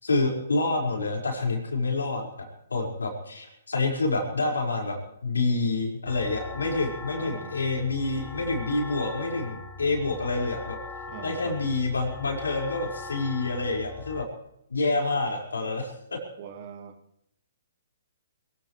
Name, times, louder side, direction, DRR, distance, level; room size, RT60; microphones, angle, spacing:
voice 1, 0.0-10.8 11.2-14.3 14.7-16.2, left 3 dB, 80° left, 0 dB, 5.2 m, -28 dB
sound 1, 6.1-14.2, left 4 dB, 20° left, 3.6 m, -41 dB
voice 2, 7.2-7.6 11.1-11.6 16.4-17.0, right 7 dB, 45° right, 6 dB, 2.4 m, -42 dB
23.5 x 17.0 x 3.3 m, 0.77 s
figure-of-eight pair, 130°, 0 cm